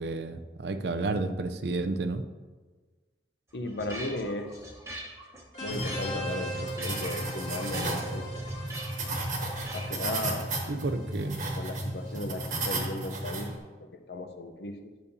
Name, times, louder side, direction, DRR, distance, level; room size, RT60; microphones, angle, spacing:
voice 1, 0.0-2.2 10.7-11.4, right 3 dB, 70° right, 9 dB, 0.5 m, -31 dB
voice 2, 3.5-4.8 5.6-8.3 9.7-10.5 11.6-13.5 13.8-14.9, left 2 dB, 70° left, 7 dB, 0.7 m, -36 dB
sound 1, 3.5-10.0, right 1 dB, 15° right, 1.0 m, -43 dB
sound 2, 5.5-12.9, equal, 45° left, 1.7 m, -41 dB
sound 3, 5.7-13.6, right 2 dB, 45° right, 1.3 m, -34 dB
11.0 x 6.9 x 2.7 m, 1.4 s
head